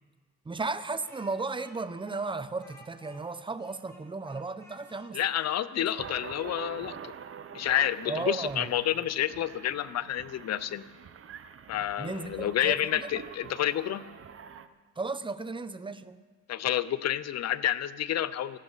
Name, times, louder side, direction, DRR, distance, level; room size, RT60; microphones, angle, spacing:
voice 1, 0.4-5.2 5.8-5.9 8.1-8.7 12.0-13.1 15.0-16.2, right 3 dB, 15° right, 0.7 m, -35 dB
Speech, 1.0-6.1, equal, 10° left, 3.6 m, -56 dB
voice 2, 5.1-7.1 7.5-10.8 11.7-14.0 16.5-18.6, left 11 dB, 60° left, 0.7 m, -29 dB
sound 1, 6.0-14.7, right 7 dB, 45° right, 0.8 m, -46 dB
18.0 x 15.0 x 4.1 m
cardioid pair, 90°, 30 cm